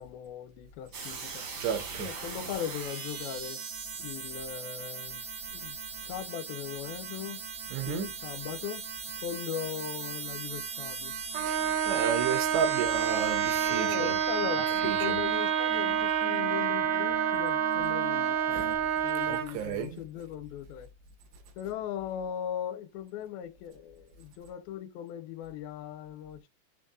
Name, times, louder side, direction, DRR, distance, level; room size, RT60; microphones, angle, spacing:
voice 1, 0.0-1.5 2.0-3.6 4.0-5.2 5.5-5.8 6.0-7.4 7.9-8.8 9.2-11.1 13.7-20.9 21.6-26.5, left 10 dB, 75° left, 2.5 m, -39 dB
sound 1, 0.9-18.8, right 6 dB, 45° right, 1.5 m, -38 dB
voice 2, 1.6-2.1 7.7-8.1 11.5-11.6 11.9-14.1 14.8-15.1 18.5-18.7 19.3-20.0, right 8 dB, 90° right, 3.3 m, -32 dB
Trumpet, 11.3-19.5, right 9 dB, 70° right, 2.1 m, -28 dB
7.5 x 7.0 x 2.4 m
omnidirectional pair, 4.8 m